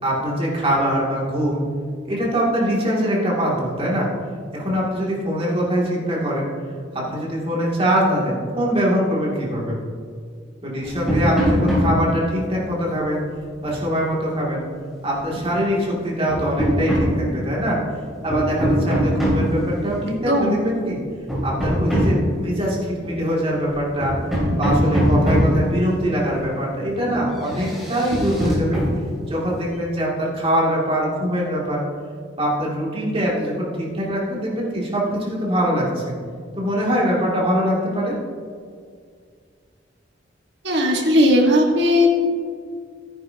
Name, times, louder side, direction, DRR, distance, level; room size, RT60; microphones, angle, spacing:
voice 1, 0.0-1.6 2.1-4.1 4.5-6.5 6.9-9.8 10.6-13.2 13.6-14.6 15.0-17.8 18.2-21.0 21.4-24.2 24.6-28.8 29.3-31.8 32.4-36.1 36.5-38.1, equal, 35° right, -5 dB, 2.6 m, -23 dB
sound 1, 10.8-12.1 13.7-13.8 15.4-15.7 16.3-17.1 17.6-17.8 18.2-19.5 20.0-20.2 20.8-22.3 23.0-23.3 23.7-23.8 24.0-25.7 26.8-27.2 27.4-28.9 29.4-29.7, equal, ahead, 3.0 m, -21 dB
voice 2, 40.6-42.2, left 1 dB, 70° right, 0 dB, 1.7 m, -17 dB
13.5 x 9.8 x 2.9 m, 2.1 s
head